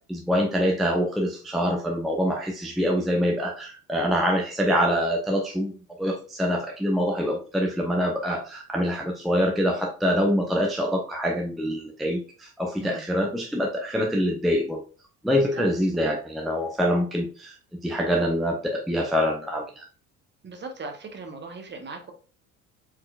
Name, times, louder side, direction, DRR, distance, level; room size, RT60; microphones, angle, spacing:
voice 1, 0.1-14.8 15.2-17.5 17.8-19.9, equal, ahead, 1 dB, 0.6 m, -25 dB
voice 2, 20.4-22.1, right 3 dB, 25° right, 5 dB, 0.9 m, -38 dB
4.5 x 3.8 x 2.3 m, 0.38 s
figure-of-eight pair, 55°, 46 cm